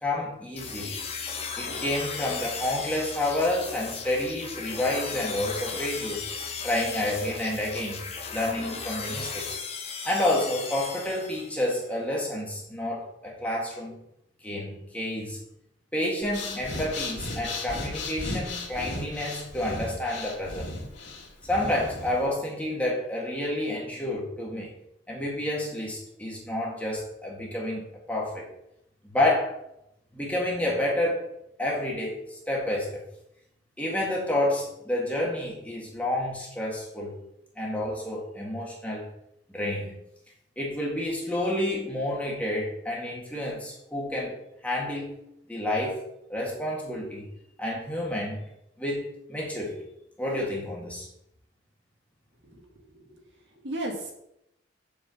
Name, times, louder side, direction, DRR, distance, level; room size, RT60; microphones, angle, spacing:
voice 1, 0.0-1.0 1.6-6.3 6.6-9.7 10.0-13.9 14.4-15.4 15.9-20.7 21.4-24.7 25.1-28.5 29.0-29.6 30.1-31.2 31.6-33.0 33.8-37.1 37.6-39.1 39.5-40.0 40.6-44.3 44.6-45.2 45.5-46.0 46.3-47.3 47.6-48.4 48.8-49.8 50.2-51.1, left 1 dB, 5° left, -3 dB, 1.9 m, -29 dB
sound 1, 0.6-11.7, left 5 dB, 30° left, 1.1 m, -36 dB
Breathing, 16.2-22.3, left 2 dB, 65° left, 2.2 m, -35 dB
voice 2, 52.4-53.2 53.5-54.1, right 1 dB, 65° right, 0 dB, 1.9 m, -36 dB
7.4 x 5.0 x 6.8 m, 0.80 s
head